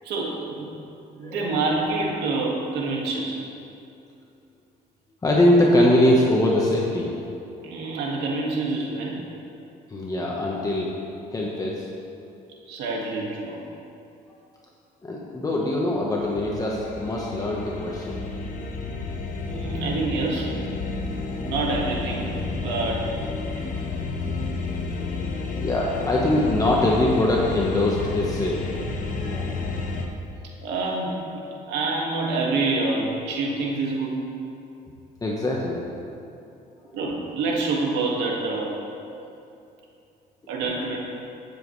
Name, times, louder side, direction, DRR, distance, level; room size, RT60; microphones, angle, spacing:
voice 1, 0.0-0.7 1.2-3.4 7.6-9.2 12.7-13.6 19.5-20.5 21.3-22.3 22.6-23.1 23.5-23.7 30.6-31.4 31.7-34.3 36.9-38.7 40.5-41.0, right 3 dB, 85° right, -2 dB, 2.0 m, -27 dB
voice 2, 1.2-1.6 5.2-7.1 9.9-10.9 11.3-11.9 15.0-18.2 21.0-21.5 24.1-25.2 25.5-28.7 29.1-29.7 35.2-35.8 36.9-37.3, left 1 dB, 20° left, -3 dB, 1.2 m, -23 dB
sound 1, 16.2-30.1, left 3 dB, 50° left, 1.1 m, -31 dB
15.5 x 7.6 x 3.2 m, 2.7 s
cardioid pair, 110°, 17 cm